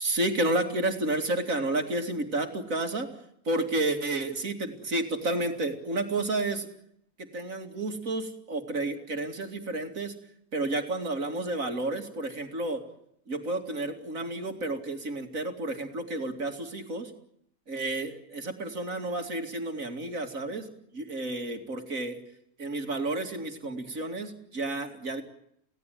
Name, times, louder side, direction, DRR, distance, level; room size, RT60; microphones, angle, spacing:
voice 1, 0.0-3.1 3.5-6.7 7.2-10.1 10.5-12.8 13.3-17.1 17.7-20.7 20.9-22.2 22.6-25.2, right 2 dB, 60° right, 6 dB, 3.0 m, -31 dB
29.5 x 17.0 x 9.3 m, 0.73 s
omnidirectional pair, 1.6 m